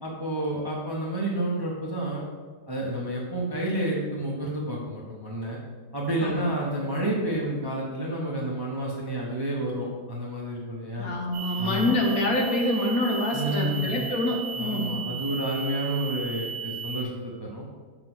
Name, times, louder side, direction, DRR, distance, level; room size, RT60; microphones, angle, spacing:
voice 1, 0.0-2.2 2.7-5.6 5.9-11.1 11.6-12.0 13.3-14.1 14.6-17.7, right 1 dB, 20° right, -3 dB, 0.7 m, -30 dB
voice 2, 11.0-15.0, left 1 dB, 60° left, 0 dB, 1.4 m, -26 dB
sound 1, 11.3-17.0, right 5 dB, 90° right, 1.4 m, -35 dB
6.4 x 4.0 x 6.1 m, 1.4 s
omnidirectional pair, 1.8 m